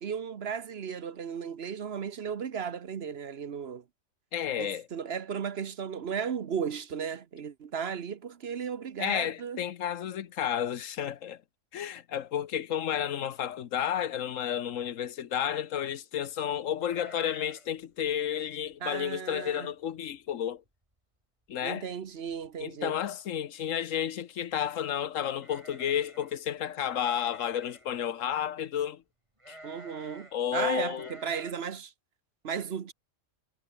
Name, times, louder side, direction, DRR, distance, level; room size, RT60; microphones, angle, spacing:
voice 1, 0.0-3.8 4.6-9.6 18.8-19.7 21.6-22.9 29.6-31.9 32.4-32.9, right 7 dB, 55° right, 1.1 m, -35 dB
voice 2, 4.3-4.9 9.0-11.4 11.7-20.6 21.5-21.9 22.6-29.0 29.5-29.6 30.3-31.1, left 9 dB, 85° left, 1.3 m, -31 dB
sound 1, 16.8-17.8 18.0-18.1 18.6-18.9 19.4-19.5 19.8-20.3 20.7-20.8 21.9-22.0 22.3-22.7 25.4-26.4 26.9-27.9 29.4-30.4 30.9-31.5, right 1 dB, 25° right, 5.0 m, -50 dB
omnidirectional pair, 1.3 m